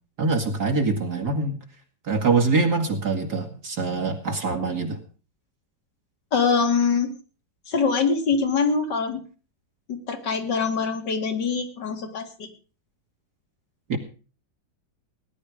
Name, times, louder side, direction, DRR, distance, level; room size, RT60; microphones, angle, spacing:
voice 1, 0.2-1.6 2.0-5.0 13.9-14.0, right 4 dB, 60° right, 3 dB, 2.5 m, -24 dB
voice 2, 6.3-7.1 7.7-9.2 9.9-12.5, left 5 dB, 65° left, 6 dB, 2.8 m, -24 dB
18.0 x 11.0 x 4.9 m, 0.37 s
omnidirectional pair, 2.0 m